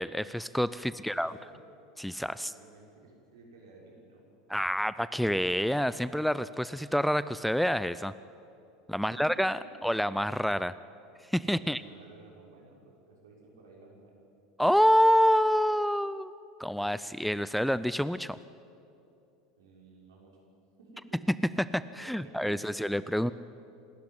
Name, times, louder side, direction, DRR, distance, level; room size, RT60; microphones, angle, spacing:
voice 1, 0.0-1.4 2.0-2.5 4.5-8.1 8.9-10.7 11.3-11.8 14.6-16.3 16.6-18.4 21.6-23.3, equal, ahead, 16 dB, 0.5 m, -27 dB
voice 2, 0.9-1.6 2.4-4.2 9.0-9.3 9.6-9.7 11.6-14.1 19.6-20.4 20.8-21.2 22.0-23.3, right 3 dB, 75° right, -1 dB, 6.0 m, -54 dB
27.0 x 13.0 x 9.6 m, 2.7 s
figure-of-eight pair, 80°, 2 cm